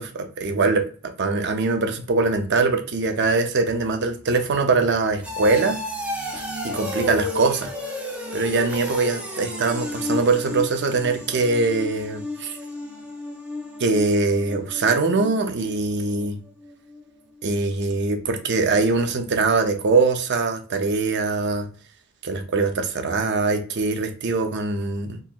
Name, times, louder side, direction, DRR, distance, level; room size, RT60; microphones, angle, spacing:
voice 1, 0.0-5.8 6.3-7.7 8.3-12.5 13.8-16.4 17.4-21.7 22.2-25.2, right 3 dB, 50° right, 6 dB, 0.5 m, -22 dB
sound 1, 3.6-16.3 16.6-17.0 17.4-17.5, left 2 dB, 5° right, 0.5 m, -33 dB
3.8 x 2.8 x 2.4 m, 0.40 s
head